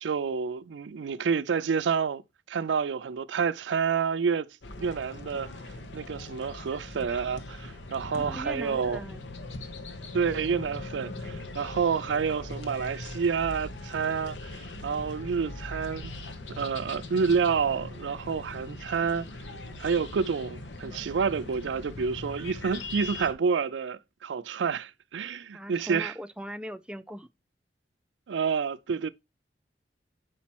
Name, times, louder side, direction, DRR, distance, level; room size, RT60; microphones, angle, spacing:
voice 1, 0.0-2.2 2.5-4.5 4.8-5.5 5.9-9.0 10.1-16.1 16.6-19.3 19.8-26.1 28.3-29.1, right 6 dB, 90° right, 0.4 m, -29 dB
sound 1, 4.6-23.3, left 2 dB, 90° left, 0.9 m, -40 dB
voice 2, 8.1-9.2 25.5-27.3, equal, 5° right, 0.3 m, -39 dB
5.1 x 4.2 x 5.9 m
head